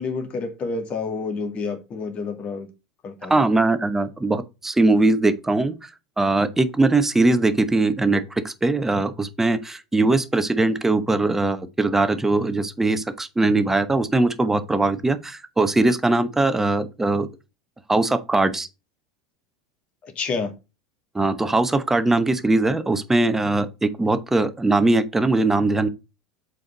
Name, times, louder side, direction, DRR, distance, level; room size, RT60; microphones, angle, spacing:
voice 1, 0.0-2.7 3.0-3.4 20.0-20.5, left 4 dB, 35° left, 2.3 m, -29 dB
voice 2, 3.3-5.9 6.2-17.3 17.9-18.7 21.1-25.9, right 2 dB, 10° right, 1.0 m, -21 dB
7.6 x 4.7 x 3.9 m
figure-of-eight pair, 75°, 3 cm